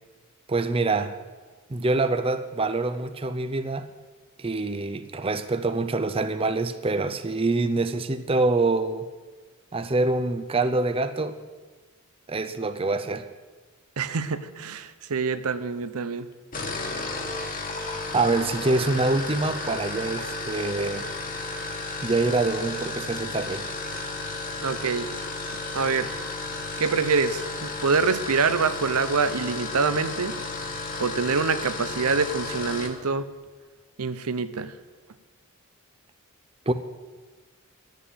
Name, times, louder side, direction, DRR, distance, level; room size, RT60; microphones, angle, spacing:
voice 1, 0.5-1.1 1.7-3.9 4.4-9.1 9.7-11.4 12.3-13.2 18.1-21.1 22.0-23.7 36.7-36.8, right 3 dB, 25° right, 9 dB, 0.6 m, -25 dB
voice 2, 14.0-16.3 24.6-25.1 25.7-26.2 26.8-30.3 31.0-33.3 34.0-34.7, right 5 dB, 90° right, 12 dB, 0.7 m, -25 dB
sound 1, 16.4-33.0, left 3 dB, 40° left, 1.5 m, -33 dB
11.0 x 8.3 x 8.2 m, 1.3 s
head